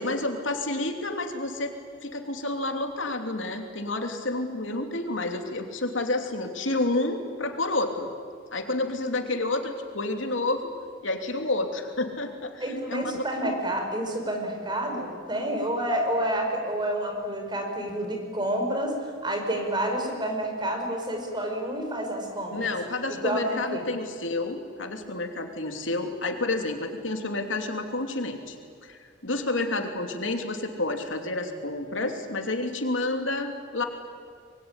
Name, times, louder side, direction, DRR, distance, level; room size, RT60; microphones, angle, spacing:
voice 1, 0.0-1.7 2.0-8.1 8.5-10.7 11.0-13.6 22.5-28.6 28.8-33.9, left 2 dB, 75° left, 4 dB, 3.0 m, -30 dB
voice 2, 12.6-22.6 23.1-23.8, right 1 dB, 25° right, 3 dB, 5.2 m, -29 dB
26.0 x 22.0 x 9.9 m, 2.1 s
head